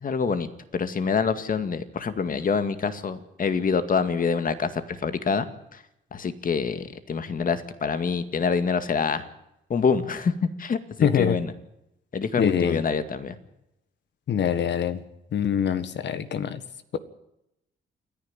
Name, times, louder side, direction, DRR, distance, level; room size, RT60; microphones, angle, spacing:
voice 1, 0.0-5.5 5.7-5.8 6.1-9.3 9.7-10.3 10.6-11.5 12.1-13.4, left 5 dB, 45° left, 10 dB, 2.1 m, -26 dB
voice 2, 11.0-11.4 12.4-12.8 14.3-15.0 15.3-16.6 16.9-17.0, left 8 dB, 60° left, 12 dB, 1.7 m, -24 dB
28.5 x 10.5 x 9.0 m, 0.85 s
cardioid pair, 90°, 20 cm